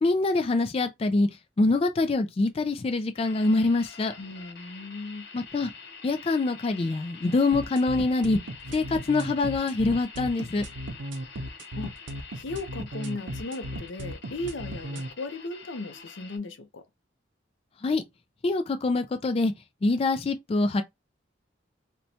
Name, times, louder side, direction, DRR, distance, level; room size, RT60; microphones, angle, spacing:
voice 1, 0.0-1.3 1.6-4.1 5.3-5.7 6.0-8.4 8.7-10.7 17.8-18.0 18.4-19.5 19.8-20.8, left 3 dB, 30° left, 0.3 m, -25 dB
sound 1, 3.1-16.4, left 5 dB, 60° left, 0.9 m, -46 dB
voice 2, 4.2-5.3 11.7-11.9 12.3-16.8, left 2 dB, 85° left, 0.6 m, -36 dB
sound 2, 7.5-15.1, equal, 80° right, 0.6 m, -36 dB
4.2 x 2.2 x 2.7 m
head